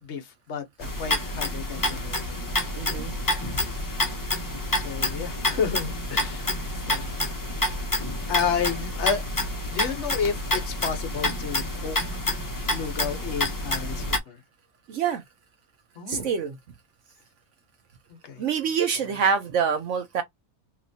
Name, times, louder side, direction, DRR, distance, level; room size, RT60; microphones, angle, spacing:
voice 1, 0.0-2.8 3.6-4.1 4.8-6.5 6.9-7.1 8.3-9.2 9.7-12.2 12.7-14.4 16.0-16.3 18.1-18.4 18.9-19.1, left 6 dB, 55° left, 1.0 m, -31 dB
sound 1, 0.8-14.2, left 1 dB, 25° left, 0.5 m, -28 dB
voice 2, 2.8-3.1 14.9-15.2 16.1-16.5 18.4-20.2, right 6 dB, 65° right, 0.9 m, -25 dB
3.0 x 2.9 x 2.6 m
omnidirectional pair, 1.5 m